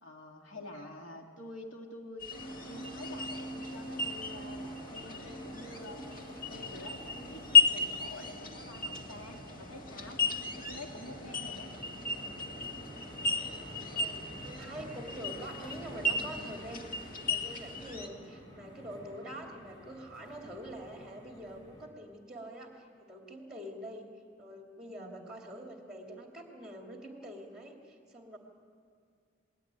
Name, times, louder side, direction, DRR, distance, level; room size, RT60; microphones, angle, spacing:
voice 1, 0.0-10.2 10.6-11.7 25.0-25.2, left 1 dB, 85° left, 2 dB, 2.3 m, -48 dB
sound 1, 2.2-18.1, left 5 dB, 45° left, 2.0 m, -34 dB
sound 2, 2.3-21.9, right 1 dB, 20° left, 5.8 m, -47 dB
voice 2, 13.9-17.0 17.3-24.1 24.4-28.4, equal, 5° right, 1 dB, 2.8 m, -45 dB
29.0 x 20.5 x 9.2 m, 2.2 s
head